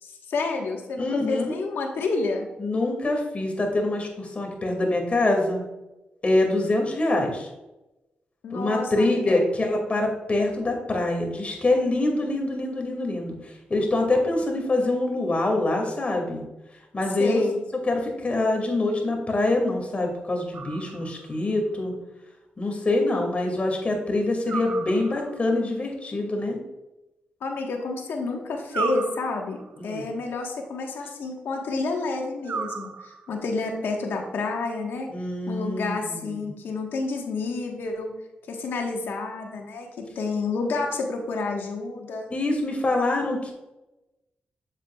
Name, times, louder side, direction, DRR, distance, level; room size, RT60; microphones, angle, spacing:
voice 1, 0.0-2.5 8.4-9.4 17.2-17.6 27.4-29.6 29.8-35.1 35.5-38.1 38.5-39.9 40.1-42.3, left 3 dB, 80° left, 2 dB, 1.4 m, -29 dB
voice 2, 1.0-1.6 2.6-5.6 6.2-7.5 8.5-16.4 16.9-17.4 17.8-21.9 22.6-26.6 29.8-30.0 35.1-36.5 42.3-43.5, left 2 dB, 35° left, 2 dB, 2.4 m, -25 dB
sound 1, 20.5-21.4 24.5-25.5 28.7-29.8 32.4-33.4, right 5 dB, 55° right, 0.5 m, -34 dB
7.9 x 7.3 x 2.4 m, 0.99 s
cardioid pair, 60°, 4 cm